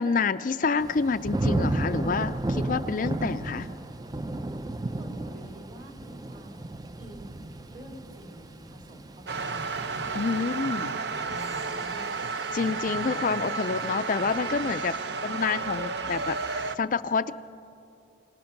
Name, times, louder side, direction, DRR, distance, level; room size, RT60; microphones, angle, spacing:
voice 1, 0.0-3.7 10.1-10.9 12.5-15.0 15.2-17.3, left 4 dB, 45° left, 11 dB, 0.4 m, -28 dB
Thunder / Rain, 0.8-11.7 12.1-12.6, right 2 dB, 20° right, 0.4 m, -33 dB
voice 2, 4.9-6.7 7.0-9.7 10.3-12.2 14.9-15.3, right 1 dB, 45° right, 1 dB, 2.9 m, -47 dB
sound 1, 9.3-16.8, right 4 dB, 60° right, 0.7 m, -32 dB
26.5 x 18.5 x 5.9 m, 2.6 s
head